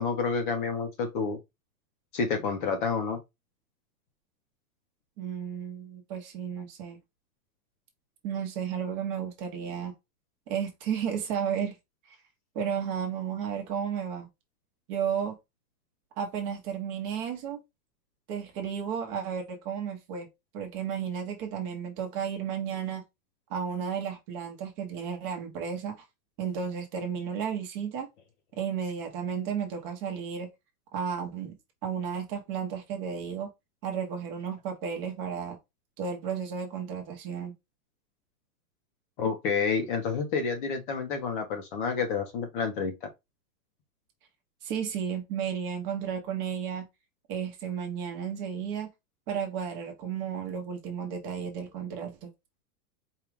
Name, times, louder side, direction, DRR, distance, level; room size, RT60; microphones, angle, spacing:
voice 1, 0.0-1.4 2.1-3.2 39.2-43.1, left 5 dB, 35° left, 0.6 m, -29 dB
voice 2, 5.2-7.0 8.2-9.9 10.5-11.8 12.1-12.2 12.5-14.3 14.9-15.4 16.2-17.6 18.3-20.3 20.5-23.0 23.5-26.0 26.4-28.1 28.6-30.5 30.9-33.5 33.8-35.6 36.0-37.5 44.6-46.9 47.3-48.9 49.3-52.3, right 7 dB, 30° right, 1.0 m, -33 dB
4.6 x 2.4 x 3.4 m
supercardioid pair, 165°, 47 cm